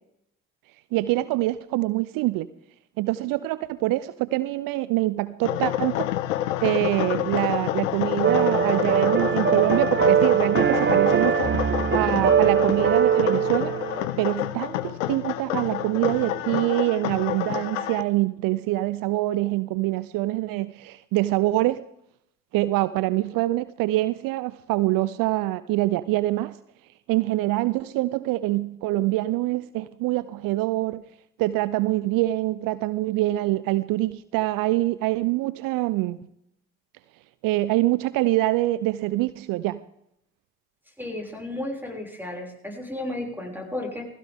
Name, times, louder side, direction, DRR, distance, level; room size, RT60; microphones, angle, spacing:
voice 1, 0.9-2.5 3.0-6.1 6.6-11.5 11.9-13.7 14.2-21.8 22.5-26.6 27.1-31.0 31.4-36.2 37.4-39.8, right 17 dB, 65° right, 16 dB, 0.7 m, -25 dB
sound 1, 5.4-18.0, left 13 dB, 85° left, 0.8 m, -28 dB
sound 2, 8.2-14.1, right 8 dB, 30° right, 0.9 m, -22 dB
voice 2, 41.0-44.1, left 1 dB, 5° right, 1 dB, 6.0 m, -33 dB
20.0 x 15.5 x 3.6 m, 0.78 s
hypercardioid pair, 50°, 37 cm